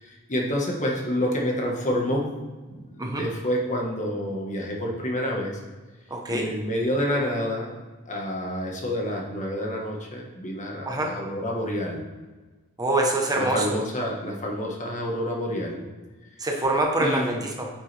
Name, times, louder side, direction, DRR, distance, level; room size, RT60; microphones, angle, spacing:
voice 1, 0.0-2.3 2.7-5.5 6.3-7.8 8.1-12.0 13.3-15.8 17.0-17.5, equal, 35° left, -1 dB, 1.5 m, -28 dB
voice 2, 6.1-6.5 10.9-11.1 12.8-13.8 16.4-17.7, right 2 dB, 15° right, 1 dB, 1.0 m, -25 dB
9.5 x 7.3 x 3.4 m, 1.3 s
head